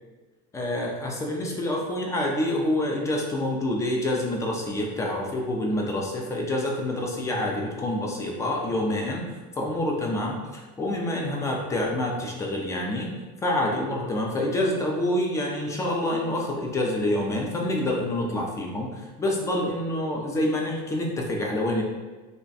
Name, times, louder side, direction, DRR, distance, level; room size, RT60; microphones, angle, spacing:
voice 1, 0.5-9.2 9.5-13.1 13.4-21.8, left 1 dB, 15° left, -1 dB, 0.4 m, -27 dB
2.4 x 2.2 x 3.9 m, 1.3 s
supercardioid pair, 140°, 21 cm